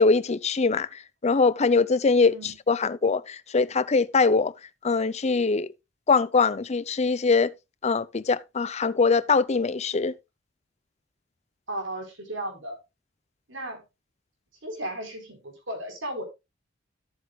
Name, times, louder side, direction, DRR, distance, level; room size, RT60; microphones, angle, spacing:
voice 1, 0.0-4.5 4.8-5.7 6.1-7.5 7.8-10.1, left 4 dB, 35° left, 0.5 m, -22 dB
voice 2, 2.2-2.5 11.7-12.8 13.5-13.8 14.6-16.2, right 1 dB, 85° right, 4.3 m, -35 dB
13.5 x 8.1 x 2.3 m
head